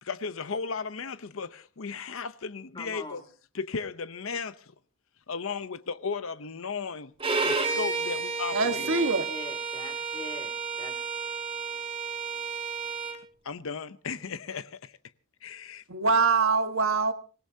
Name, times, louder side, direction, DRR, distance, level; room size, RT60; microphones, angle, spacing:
voice 1, 0.0-3.2 3.5-4.7 5.3-7.1 7.4-9.0 13.4-14.9 15.4-15.8, left 5 dB, 70° left, 0.7 m, -35 dB
voice 2, 2.7-3.2 8.8-10.5 10.8-11.0, left 2 dB, 20° left, 2.6 m, -42 dB
Bowed string instrument, 7.2-13.2, right 4 dB, 25° right, 2.4 m, -31 dB
voice 3, 8.5-9.2 15.9-17.1, right 4 dB, 70° right, 1.5 m, -24 dB
26.0 x 17.5 x 2.8 m
head